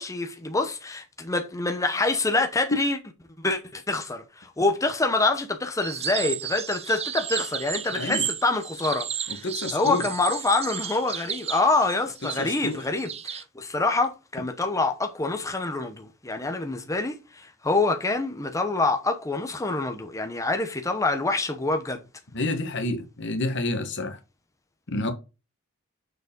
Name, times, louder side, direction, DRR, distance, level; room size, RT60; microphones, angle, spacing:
voice 1, 0.0-3.0 3.4-9.4 9.7-22.0, left 3 dB, 15° left, 0.8 m, -26 dB
sound 1, 5.8-13.4, right 9 dB, 30° right, 0.6 m, -33 dB
voice 2, 7.9-8.3 9.3-10.0 12.4-12.8 22.3-24.2 24.9-25.1, left 2 dB, 60° left, 1.5 m, -29 dB
6.5 x 4.8 x 5.1 m
head